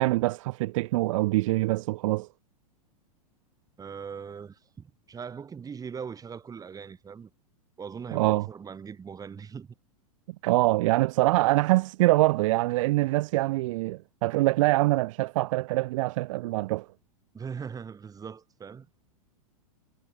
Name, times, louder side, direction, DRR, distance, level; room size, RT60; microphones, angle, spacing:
voice 1, 0.0-2.3 8.1-8.5 10.4-16.9, right 19 dB, 55° right, 2.2 m, -24 dB
voice 2, 3.8-7.3 7.8-9.7 17.3-18.9, right 6 dB, 20° right, 6.6 m, -40 dB
hypercardioid pair, 110°, 19 cm